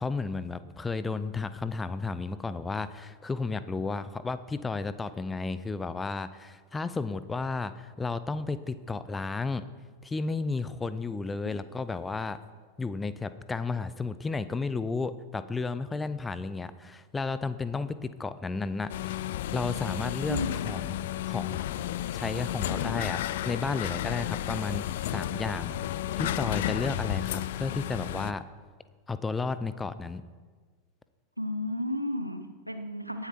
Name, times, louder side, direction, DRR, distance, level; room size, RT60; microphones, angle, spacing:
voice 1, 0.0-9.6 10.0-12.4 12.8-19.3 19.5-20.4 20.7-20.9 21.3-21.6 22.1-25.8 26.2-28.4 29.1-30.2, left 4 dB, 15° left, 14 dB, 0.6 m, -33 dB
sound 1, 18.9-28.3, left 13 dB, 55° left, 0.4 m, -32 dB
voice 2, 20.3-20.7 31.4-33.3, left 1 dB, 90° right, 8 dB, 1.0 m, -33 dB
18.0 x 9.7 x 4.5 m, 1.5 s
figure-of-eight pair, 90°, 0 cm